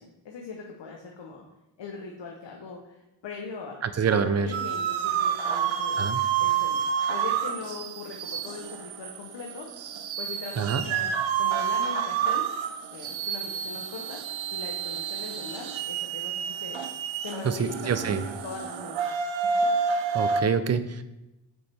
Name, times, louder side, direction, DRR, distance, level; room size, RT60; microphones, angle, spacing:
voice 1, 0.0-1.4 1.8-3.8 4.1-6.0 6.4-6.8 7.1-9.7 10.2-12.5 12.9-14.2 14.5-19.7, left 4 dB, 70° left, -1 dB, 0.9 m, -40 dB
voice 2, 3.8-4.5 6.0-6.2 10.6-10.8 17.4-18.2 20.1-21.0, right 6 dB, 35° right, 12 dB, 0.4 m, -26 dB
sound 1, 4.5-20.4, right 7 dB, 85° right, 0.6 m, -29 dB
6.2 x 5.4 x 3.4 m, 0.95 s
wide cardioid pair, 100°, 45 cm